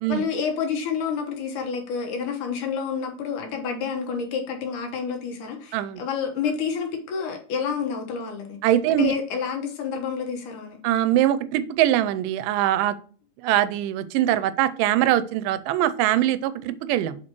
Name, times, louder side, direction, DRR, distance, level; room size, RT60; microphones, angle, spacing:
voice 1, 0.1-8.6 8.9-10.8, left 6 dB, 75° left, 3 dB, 2.5 m, -29 dB
voice 2, 8.6-9.1 10.8-13.0 13.4-17.2, right 12 dB, 90° right, 14 dB, 2.2 m, -22 dB
7.2 x 4.5 x 3.0 m, 0.43 s
omnidirectional pair, 3.8 m